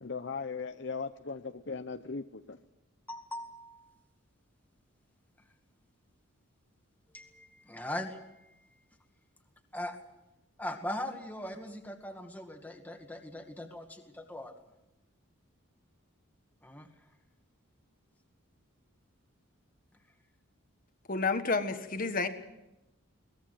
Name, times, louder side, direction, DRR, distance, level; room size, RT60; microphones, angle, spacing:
voice 1, 0.0-2.6, left 4 dB, 55° left, 8 dB, 0.8 m, -38 dB
voice 2, 3.1-3.9 7.1-8.2 9.7-10.0 10.6-14.5 16.6-16.9, left 1 dB, 10° left, 4 dB, 2.0 m, -40 dB
voice 3, 21.1-22.3, left 4 dB, 40° left, 8 dB, 1.5 m, -30 dB
22.5 x 19.0 x 7.7 m, 0.92 s
head